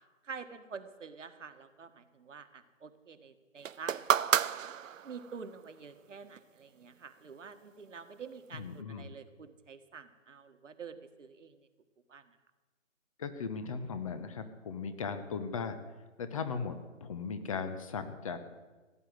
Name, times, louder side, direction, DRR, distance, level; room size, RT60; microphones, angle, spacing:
voice 1, 0.2-4.6 5.0-11.6 12.1-12.4, right 5 dB, 70° right, 8 dB, 1.7 m, -48 dB
sound 1, 3.7-5.4 6.4-6.5, right 8 dB, 85° right, 0.6 m, -30 dB
voice 2, 8.5-9.1 13.2-15.8 16.2-18.4, left 5 dB, 25° left, 10 dB, 0.9 m, -37 dB
17.0 x 10.5 x 7.8 m, 1.3 s
hypercardioid pair, 155°, 38 cm